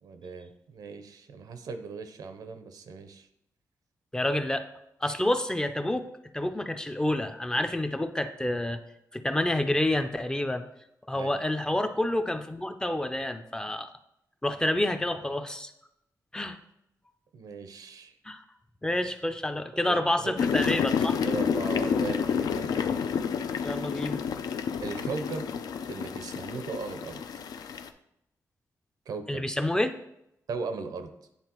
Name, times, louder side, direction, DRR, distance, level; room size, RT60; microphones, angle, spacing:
voice 1, 0.0-3.3 5.0-5.2 11.1-11.3 17.3-18.1 19.9-20.4 21.2-22.9 24.8-25.5 25.9-27.2 29.1-29.5 30.5-31.1, right 4 dB, 80° right, 8 dB, 0.6 m, -38 dB
voice 2, 4.1-4.7 5.0-6.1 6.3-8.8 9.1-10.6 11.1-13.9 14.4-15.7 16.3-16.6 18.3-18.4 18.8-21.2 23.6-24.2 29.3-29.9, left 1 dB, 10° left, 8 dB, 0.4 m, -28 dB
sound 1, 20.4-27.9, left 7 dB, 85° left, 0.4 m, -29 dB
9.7 x 3.6 x 2.9 m, 0.80 s
wide cardioid pair, 135°, 6 cm